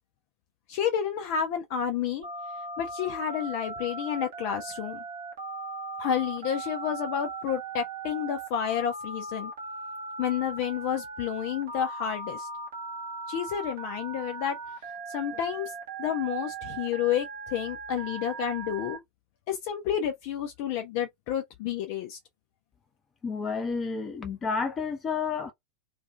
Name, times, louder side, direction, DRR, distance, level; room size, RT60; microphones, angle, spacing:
voice 1, 0.7-2.2 2.8-5.0 6.0-9.5 10.2-12.5 13.3-14.6 15.1-15.7 16.0-19.0 19.5-22.2, left 9 dB, 45° left, 0.5 m, -30 dB
Telephone, 2.2-19.0, right 3 dB, 60° right, 0.9 m, -38 dB
voice 2, 23.2-25.5, left 5 dB, 20° left, 0.8 m, -30 dB
2.4 x 2.4 x 2.3 m
figure-of-eight pair, 90°, 0 cm